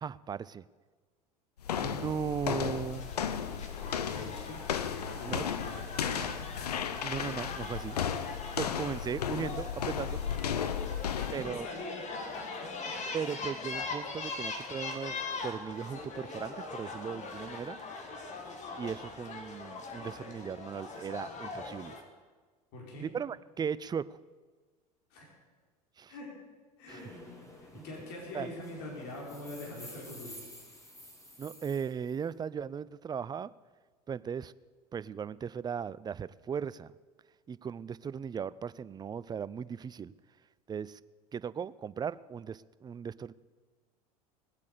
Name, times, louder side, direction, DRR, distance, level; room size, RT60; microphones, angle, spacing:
voice 1, 0.0-0.6 1.8-3.1 5.3-5.5 7.0-8.0 8.6-10.2 11.3-11.7 13.1-17.8 18.8-22.0 23.0-24.2 26.0-26.1 26.9-27.1 28.3-28.5 31.4-33.5 34.1-34.5 34.9-36.9 37.5-40.1 40.7-41.0 41.3-43.3, right 7 dB, 20° right, 18 dB, 0.5 m, -37 dB
sound 1, 1.6-11.5, left 8 dB, 90° left, 0.8 m, -34 dB
sound 2, 2.9-22.0, left 3 dB, 35° left, 2.3 m, -41 dB
voice 2, 3.1-4.6 4.9-6.4 11.2-12.7 13.3-13.4 22.7-23.1 25.1-25.2 26.1-26.3 26.8-27.1 27.7-30.4, left 2 dB, 60° left, -2 dB, 4.8 m, -44 dB
sound 3, 26.9-32.2, left 1 dB, 15° left, 3.3 m, -51 dB
19.5 x 8.4 x 6.8 m, 1.4 s
hypercardioid pair, 85°, 20 cm